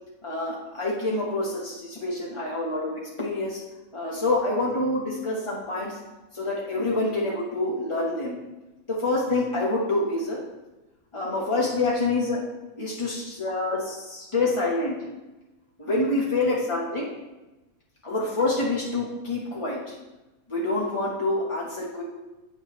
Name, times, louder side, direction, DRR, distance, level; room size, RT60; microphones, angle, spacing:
voice 1, 0.2-3.6 3.9-6.0 6.3-8.4 8.9-10.4 11.1-12.4 12.7-15.0 15.8-17.1 18.0-19.9 20.5-22.0, left 2 dB, 30° left, -5 dB, 0.5 m, -27 dB
8.8 x 5.9 x 3.0 m, 1.1 s
omnidirectional pair, 2.3 m